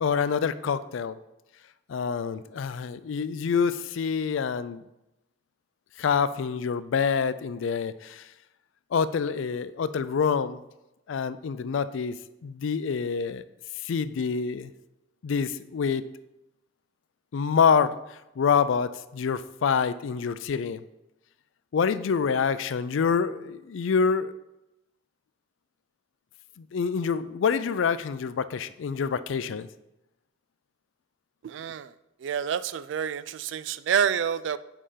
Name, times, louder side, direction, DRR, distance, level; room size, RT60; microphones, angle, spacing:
voice 1, 0.0-1.2 1.9-4.8 6.0-8.3 8.9-10.6 11.1-12.2 12.4-13.4 13.8-14.7 15.2-16.0 17.3-20.8 21.7-24.3 26.6-29.7, left 6 dB, 75° left, 14 dB, 0.4 m, -26 dB
voice 2, 31.4-31.9 32.2-34.6, right 8 dB, 65° right, 16 dB, 0.3 m, -28 dB
5.4 x 4.9 x 5.5 m, 0.92 s
head